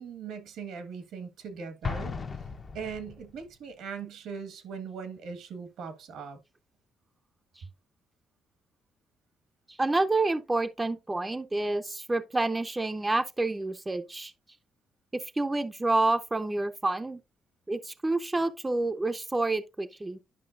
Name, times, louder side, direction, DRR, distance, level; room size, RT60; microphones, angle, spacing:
voice 1, 0.0-2.1 2.7-6.4, right 6 dB, 85° right, 1.4 m, -40 dB
Explosion, 1.8-3.4, left 5 dB, 40° left, 0.7 m, -36 dB
voice 2, 9.7-14.3 15.1-17.2 17.7-20.2, right 2 dB, 15° right, 0.6 m, -28 dB
10.5 x 5.4 x 2.5 m
cardioid pair, 90°, 0 cm